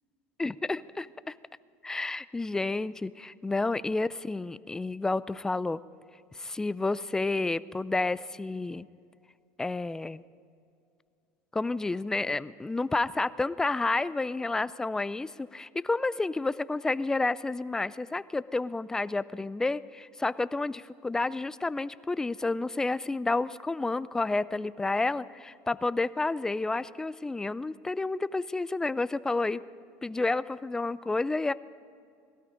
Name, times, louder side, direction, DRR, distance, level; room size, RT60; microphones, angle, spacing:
voice 1, 0.4-1.3 1.8-5.8 6.3-8.9 9.6-10.2 11.5-29.6 30.0-31.5, left 3 dB, 10° left, 17 dB, 0.3 m, -30 dB
17.5 x 13.0 x 5.1 m, 2.4 s
supercardioid pair, 130°, 6 cm